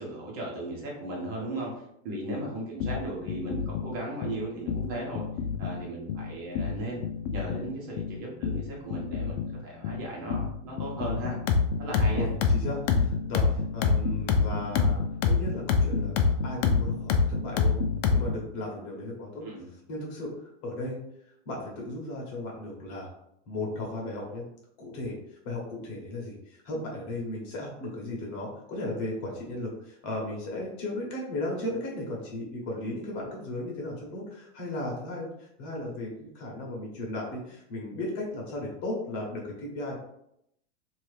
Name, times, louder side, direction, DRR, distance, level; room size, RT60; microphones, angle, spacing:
voice 1, 0.0-5.2 5.6-7.0 7.3-11.4 11.8-12.3 19.4-19.7, right 2 dB, 45° right, -3 dB, 1.2 m, -36 dB
sound 1, 2.8-18.5, left 5 dB, 65° left, 0.6 m, -27 dB
voice 2, 12.0-17.8 18.0-19.4 19.9-21.0 21.4-23.1 23.5-24.5 24.8-40.0, left 1 dB, 40° left, -2 dB, 1.0 m, -36 dB
2.8 x 2.7 x 3.3 m, 0.76 s
supercardioid pair, 145°, 38 cm